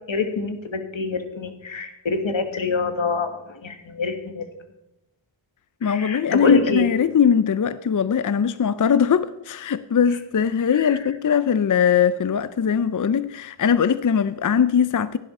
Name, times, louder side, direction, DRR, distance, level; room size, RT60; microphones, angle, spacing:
voice 1, 0.1-4.4 5.8-6.9 10.7-11.0, left 4 dB, 75° left, 1.7 m, -25 dB
voice 2, 5.8-15.2, left 7 dB, 45° left, 0.5 m, -21 dB
16.0 x 11.0 x 4.3 m
wide cardioid pair, 80°, 46 cm